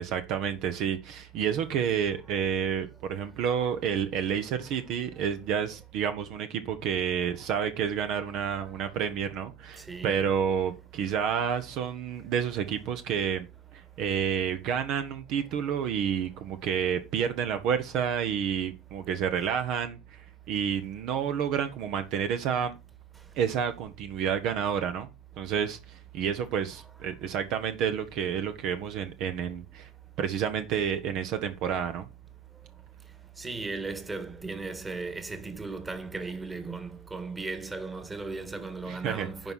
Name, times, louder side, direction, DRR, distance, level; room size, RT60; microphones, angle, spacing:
voice 1, 0.0-13.5 13.7-22.8 23.4-25.1 25.4-29.9 30.2-32.1 38.9-39.3, right 8 dB, 55° right, 1.2 m, -29 dB
voice 2, 9.9-10.2 33.4-39.5, right 3 dB, 15° right, 1.8 m, -36 dB
10.5 x 4.7 x 5.6 m
hypercardioid pair, 75°, 0 cm